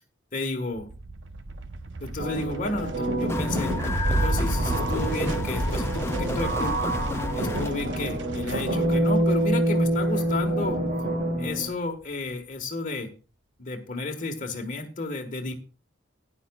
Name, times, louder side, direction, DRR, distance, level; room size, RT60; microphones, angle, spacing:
voice 1, 0.3-0.9 2.0-3.8 4.1-6.9 7.3-10.9 11.4-13.1 13.6-15.5, left 2 dB, 45° left, 4 dB, 1.6 m, -32 dB
sound 1, 0.7-11.3, right 2 dB, 70° right, 0.9 m, -33 dB
sound 2, 2.2-11.7, right 1 dB, 45° right, 7.3 m, -27 dB
sound 3, 3.3-7.7, left 1 dB, 15° left, 0.5 m, -31 dB
15.5 x 10.0 x 2.3 m, 0.32 s
head